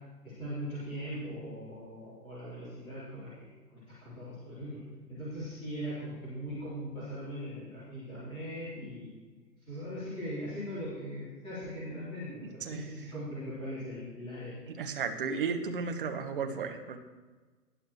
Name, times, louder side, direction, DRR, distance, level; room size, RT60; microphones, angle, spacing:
voice 1, 0.2-4.8 5.1-9.1 9.7-14.5, equal, 10° left, -13 dB, 3.6 m, -40 dB
voice 2, 12.4-13.0 14.8-17.0, right 5 dB, 30° right, 6 dB, 1.1 m, -34 dB
19.0 x 10.0 x 3.1 m, 1.3 s
figure-of-eight pair, 130°, 50 cm